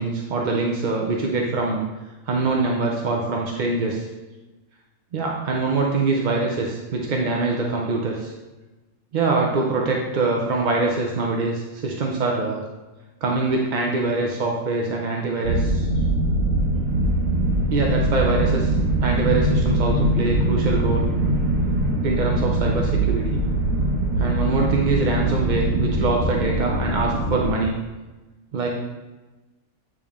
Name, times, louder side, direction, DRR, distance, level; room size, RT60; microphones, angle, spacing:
voice 1, 0.0-1.8 2.3-4.0 5.1-8.3 9.1-12.6 13.2-15.9 17.7-18.7 19.0-21.1 22.0-23.4 24.2-27.8 28.5-28.7, right 3 dB, 50° right, -1 dB, 0.6 m, -24 dB
sound 1, 15.4-27.5, right 1 dB, 70° right, 1.3 m, -22 dB
8.8 x 3.4 x 3.5 m, 1.1 s
omnidirectional pair, 1.5 m